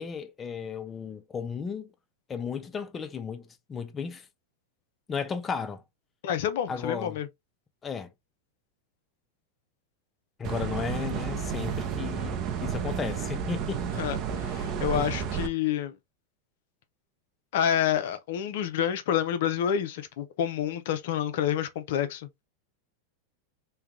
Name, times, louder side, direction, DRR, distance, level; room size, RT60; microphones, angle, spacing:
voice 1, 0.0-1.9 2.3-4.3 5.1-5.8 6.7-7.2 7.8-8.1 10.4-13.8 14.9-15.1, left 6 dB, 25° left, 0.5 m, -34 dB
voice 2, 6.2-7.3 14.0-15.9 17.5-22.3, left 9 dB, 65° left, 0.6 m, -28 dB
sound 1, 10.4-15.5, right 7 dB, 45° right, 0.7 m, -31 dB
3.3 x 2.3 x 3.2 m
hypercardioid pair, 105°, 0 cm